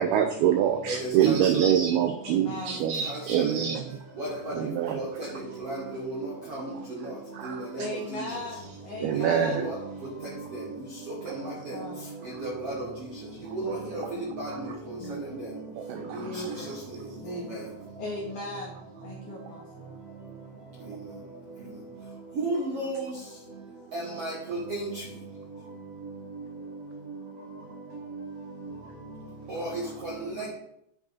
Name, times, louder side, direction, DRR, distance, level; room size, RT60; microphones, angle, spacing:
voice 1, 0.0-3.8 4.5-5.0 7.4-7.6 9.0-9.7 11.3-11.4 15.9-16.2, right 9 dB, 90° right, 7 dB, 2.2 m, -25 dB
voice 2, 1.3-1.6 4.2-4.3 4.9-5.0 5.6-5.8 6.1-6.2 7.4-7.5 9.3-9.7 12.6-12.7 13.5-13.6 13.9-14.0 14.4-14.5 22.4-22.9 23.9-24.6 29.5-29.7, right 2 dB, 70° right, -4 dB, 1.4 m, -32 dB
voice 3, 2.2-2.9 7.8-9.7 11.4-12.0 13.6-14.3 15.0-15.3 16.2-16.7 17.2-17.6 18.0-19.9, left 2 dB, 75° left, -3 dB, 1.8 m, -38 dB
10.5 x 4.9 x 4.0 m, 0.77 s
omnidirectional pair, 5.0 m